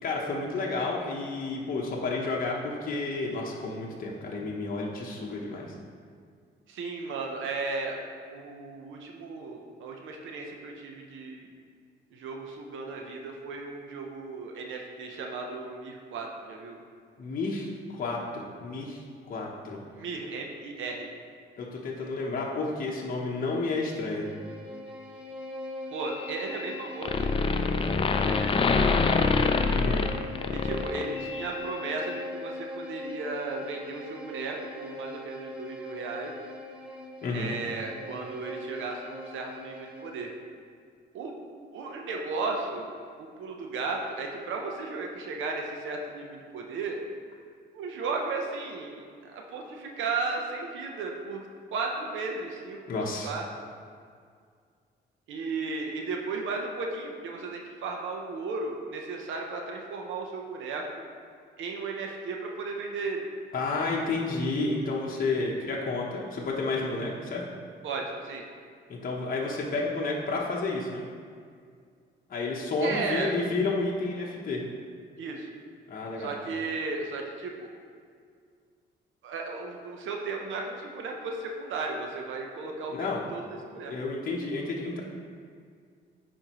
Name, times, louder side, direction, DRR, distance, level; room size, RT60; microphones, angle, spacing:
voice 1, 0.0-5.7 17.2-19.0 19.3-19.8 21.6-24.3 29.7-30.1 37.2-37.6 52.9-53.3 63.5-67.4 68.9-71.0 72.3-74.6 75.9-76.3 82.9-83.2 83.9-85.0, left 3 dB, 45° left, -3 dB, 0.9 m, -31 dB
voice 2, 6.7-8.0 8.3-11.5 12.1-16.8 20.0-21.1 25.9-29.5 30.5-36.3 37.3-40.3 41.1-41.3 41.7-42.9 43.2-47.0 47.7-49.0 49.3-52.8 53.2-53.4 55.3-61.0 61.6-63.2 67.8-68.4 72.8-73.3 75.2-75.5 76.2-77.7 79.2-83.9, right 3 dB, 80° right, 1 dB, 0.8 m, -35 dB
Bowed string instrument, 23.9-40.3, left 2 dB, 5° right, 1.1 m, -41 dB
sound 1, 26.1-26.8 27.0-31.5, left 4 dB, 25° left, 0.4 m, -25 dB
9.9 x 4.4 x 3.0 m, 2.1 s
cardioid pair, 90°, 20 cm